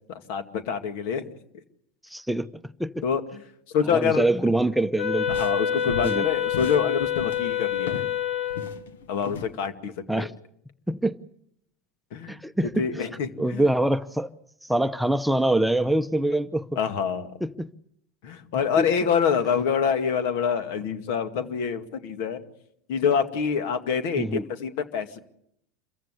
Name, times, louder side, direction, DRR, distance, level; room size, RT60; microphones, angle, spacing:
voice 1, 0.3-1.3 3.0-3.4 3.7-4.3 5.3-8.1 9.1-10.3 12.1-12.4 12.8-13.6 16.8-17.4 18.2-22.4 22.9-25.3, left 7 dB, 65° left, 2.2 m, -26 dB
voice 2, 2.1-3.0 3.9-5.3 6.0-6.3 10.1-10.3 10.9-11.2 12.3-13.1 13.4-14.3 14.7-16.7 17.4-17.7 18.8-18.9 24.2-24.5, right 1 dB, ahead, 0.8 m, -24 dB
sound 1, 5.0-8.2 8.5-9.5, left 6 dB, 85° left, 1.4 m, -37 dB
Wind instrument woodwind instrument, 5.0-8.8, left 9 dB, 45° left, 2.4 m, -27 dB
27.0 x 15.0 x 8.2 m
hypercardioid pair, 95°, 0 cm